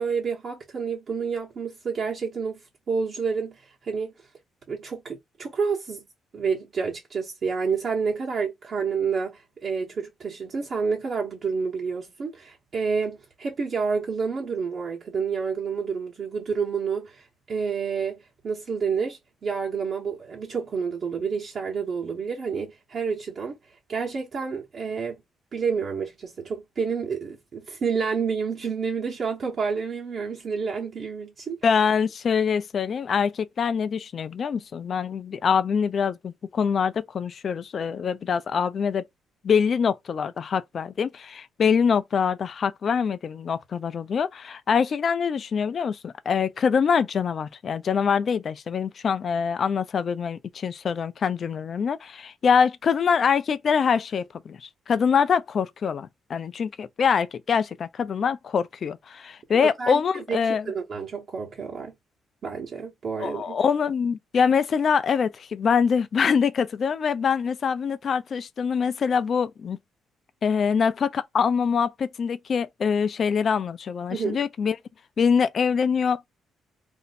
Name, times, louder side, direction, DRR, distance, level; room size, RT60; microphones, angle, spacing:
voice 1, 0.0-2.6 2.9-4.1 4.7-6.0 6.3-23.6 23.9-25.2 25.5-31.6 59.5-60.4 60.6-61.9 62.4-63.6 74.1-74.4, right 5 dB, 50° right, 1.0 m, -29 dB
voice 2, 31.6-39.1 39.4-60.7 63.2-69.8 70.4-74.8 75.2-76.3, left 6 dB, 50° left, 0.4 m, -24 dB
2.6 x 2.1 x 3.9 m
cardioid pair, 90°, 0 cm